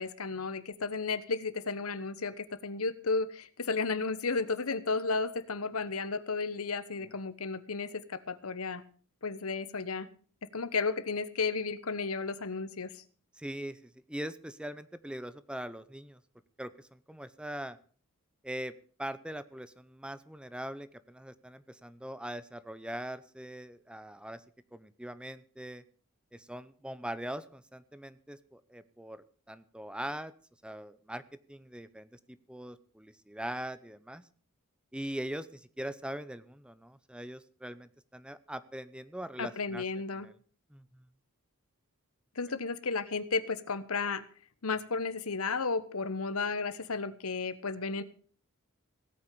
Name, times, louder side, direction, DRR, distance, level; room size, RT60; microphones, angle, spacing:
voice 1, 0.0-8.8 9.2-10.1 10.5-13.0 39.4-40.3 42.3-44.2 44.6-48.0, left 4 dB, 75° left, 13 dB, 1.2 m, -33 dB
voice 2, 13.4-16.2 16.6-17.8 18.4-18.7 19.0-24.4 24.7-25.8 26.3-30.3 30.6-31.2 31.5-34.2 34.9-39.8 40.1-40.4 40.7-40.8, right 1 dB, 5° right, 15 dB, 0.6 m, -41 dB
17.0 x 8.9 x 6.8 m, 0.43 s
head